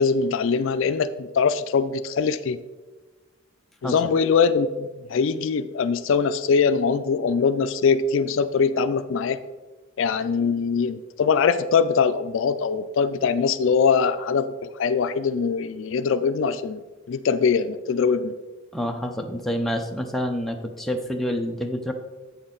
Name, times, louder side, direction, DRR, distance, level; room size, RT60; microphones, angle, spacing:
voice 1, 0.0-2.6 3.8-9.4 10.0-16.8 17.1-18.3, left 5 dB, 65° left, 11 dB, 0.4 m, -22 dB
voice 2, 18.7-21.9, equal, ahead, 2 dB, 0.6 m, -27 dB
8.1 x 6.1 x 3.8 m, 1.3 s
head